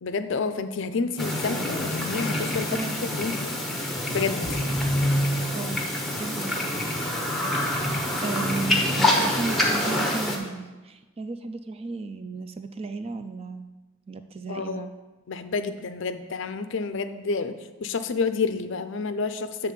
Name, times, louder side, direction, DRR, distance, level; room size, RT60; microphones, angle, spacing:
voice 1, 0.0-2.8 3.1-3.5 4.1-4.6 8.3-8.4 14.5-14.9 15.3-17.5 17.8-19.7, left 4 dB, 55° left, 10 dB, 0.4 m, -29 dB
sound 1, 1.2-10.4, left 1 dB, ahead, 0.8 m, -26 dB
voice 2, 2.7-3.4 5.5-5.8 6.2-6.8 7.5-7.9 8.2-13.7 14.1-14.9, right 3 dB, 25° right, 8 dB, 0.3 m, -34 dB
8.3 x 3.5 x 6.7 m, 1.2 s
head